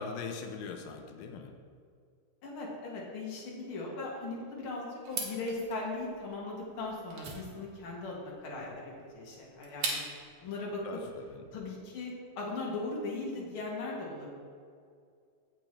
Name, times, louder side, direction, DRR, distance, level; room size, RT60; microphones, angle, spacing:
voice 1, 0.0-1.5 10.8-11.4, left 5 dB, 90° left, 4 dB, 2.6 m, -41 dB
voice 2, 2.4-10.0 10.4-10.8 11.5-14.3, left 3 dB, 45° left, -3 dB, 2.1 m, -38 dB
sound 1, 5.0-10.3, right 4 dB, 60° right, 2.1 m, -40 dB
16.0 x 6.0 x 3.3 m, 2.2 s
omnidirectional pair, 4.0 m